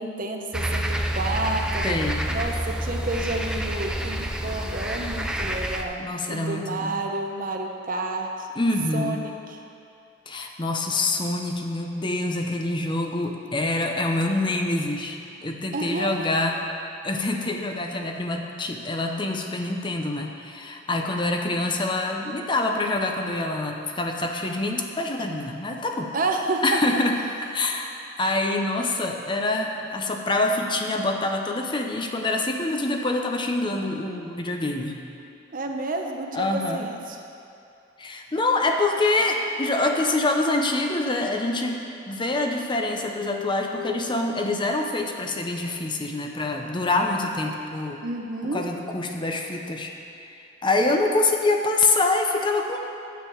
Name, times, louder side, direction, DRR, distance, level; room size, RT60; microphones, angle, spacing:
voice 1, 0.0-2.0 2.3-8.5 8.9-9.6 15.7-16.3 26.1-26.8 35.5-37.2 48.0-48.6, right 2 dB, 50° right, 3 dB, 0.9 m, -30 dB
sound 1, 0.5-5.8, equal, 5° right, 0.5 m, -28 dB
voice 2, 1.8-2.3 6.0-7.0 8.6-9.2 10.3-16.7 17.0-26.1 26.6-27.1 27.5-35.0 36.3-36.9 38.0-41.8 42.1-48.0 48.5-49.9 50.2-52.8, left 2 dB, 25° left, 2 dB, 0.7 m, -26 dB
9.4 x 6.6 x 7.2 m, 2.6 s
head